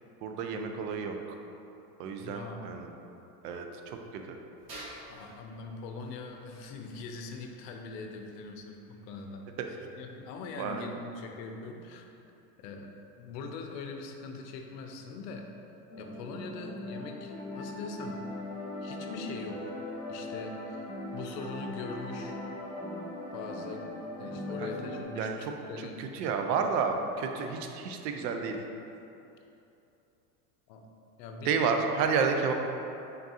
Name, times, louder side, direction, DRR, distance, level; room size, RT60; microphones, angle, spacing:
voice 1, 0.2-1.2 2.0-2.9 3.4-4.4 10.6-10.8 24.6-24.7 25.2-25.5 25.8-28.6 31.4-32.5, right 5 dB, 70° right, 4 dB, 0.6 m, -31 dB
voice 2, 2.2-2.6 5.1-12.0 12.6-15.4 16.0-18.2 18.8-19.7 20.1-20.9 21.1-22.4 23.3-23.9 24.2-26.1 30.7-30.9 31.2-31.8, left 4 dB, 75° left, 3 dB, 0.6 m, -42 dB
sound 1, 4.6-11.3, right 1 dB, 85° right, 1.5 m, -53 dB
sound 2, 15.9-25.0, left 1 dB, 15° left, 0.4 m, -39 dB
3.8 x 3.5 x 2.7 m, 2.8 s
supercardioid pair, 115°, 49 cm